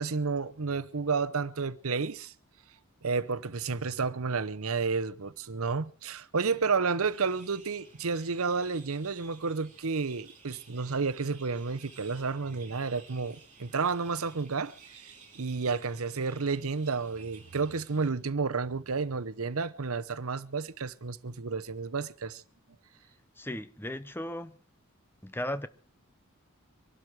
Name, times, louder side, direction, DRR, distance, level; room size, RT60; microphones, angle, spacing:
voice 1, 0.0-2.3 3.0-15.0 15.4-22.4, right 4 dB, 75° right, 0.8 m, -31 dB
sound 1, 7.1-18.1, right 5 dB, 35° right, 4.8 m, -55 dB
voice 2, 23.3-24.6 25.2-25.7, left 1 dB, 10° left, 0.8 m, -36 dB
24.5 x 12.5 x 4.7 m
head